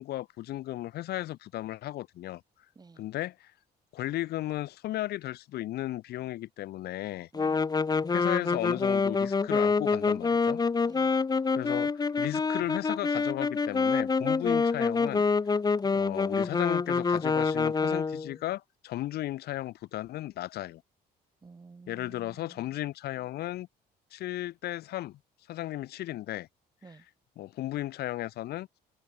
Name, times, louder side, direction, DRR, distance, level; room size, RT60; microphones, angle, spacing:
voice 1, 0.0-2.4 3.0-3.5 3.9-7.3 8.1-10.6 11.5-15.2 15.9-20.8 21.9-23.7 24.1-25.2 25.5-26.5 27.4-28.7, left 15 dB, 70° left, 1.2 m, -35 dB
voice 2, 2.8-3.1 7.3-7.7 10.8-11.2 21.4-22.8 26.8-27.1, right 4 dB, 25° right, 7.4 m, -53 dB
sound 1, 7.3-18.3, left 4 dB, 25° left, 1.4 m, -27 dB
cardioid pair, 110°, 17 cm